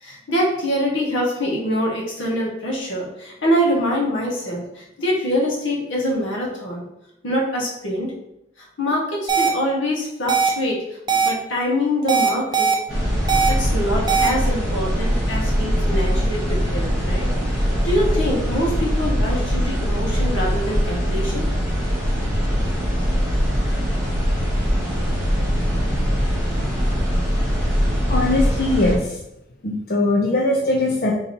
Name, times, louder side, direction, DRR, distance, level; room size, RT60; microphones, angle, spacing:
voice 1, 0.0-6.8 7.2-8.1 8.8-10.8 11.1-12.7 13.5-17.3 17.6-21.5, equal, 85° left, -3 dB, 1.4 m, -24 dB
sound 1, 9.3-9.5 10.3-10.5 11.1-11.3 12.1-12.7 13.3-13.5 14.1-14.3, right 6 dB, 25° right, 0.5 m, -18 dB
sound 2, 12.9-29.0, equal, ahead, 1.3 m, -22 dB
voice 2, 28.1-29.2 29.6-31.1, left 2 dB, 50° left, -2 dB, 0.5 m, -20 dB
3.9 x 2.9 x 4.1 m, 0.81 s
head